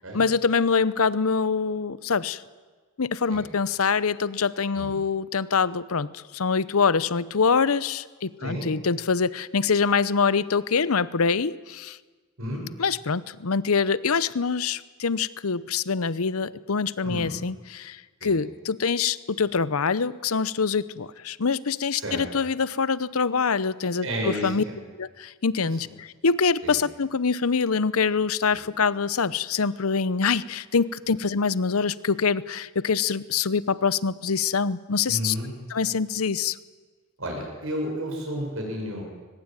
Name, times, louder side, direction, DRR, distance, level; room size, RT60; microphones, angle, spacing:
voice 1, 0.1-2.4 3.0-12.0 12.8-24.6 24.9-35.4 35.7-36.6, left 5 dB, 80° left, 18 dB, 0.8 m, -25 dB
voice 2, 24.0-24.8 26.6-26.7 35.1-35.5 37.2-39.0, equal, 65° right, 0 dB, 6.8 m, -31 dB
23.0 x 20.5 x 9.1 m, 1.4 s
head